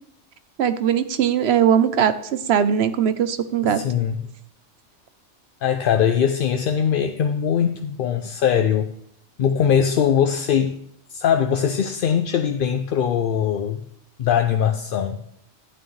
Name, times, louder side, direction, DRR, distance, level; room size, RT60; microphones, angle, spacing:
voice 1, 0.6-3.8, right 8 dB, 65° right, 11 dB, 0.9 m, -20 dB
voice 2, 3.6-4.2 5.6-8.9 9.4-10.8 11.1-13.8 14.2-15.2, left 8 dB, 60° left, 7 dB, 0.6 m, -21 dB
11.5 x 8.8 x 3.2 m, 0.74 s
omnidirectional pair, 1.2 m